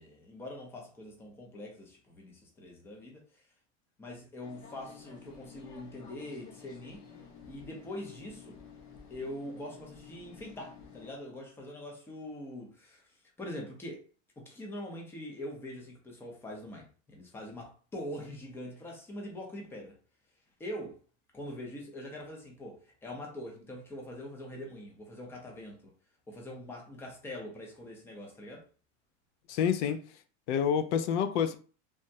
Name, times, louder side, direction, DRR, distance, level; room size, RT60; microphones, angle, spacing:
voice 1, 0.0-3.4 4.0-7.1 7.4-8.6 9.1-14.0 14.4-20.0 20.6-21.0 21.3-25.9 26.3-28.6, left 1 dB, 5° left, 0.5 m, -43 dB
sound 1, 4.4-11.1, left 6 dB, 50° left, 0.9 m, -52 dB
voice 2, 29.5-30.2 30.5-31.5, left 8 dB, 85° left, 0.5 m, -28 dB
3.4 x 2.0 x 2.6 m
supercardioid pair, 160°, 34 cm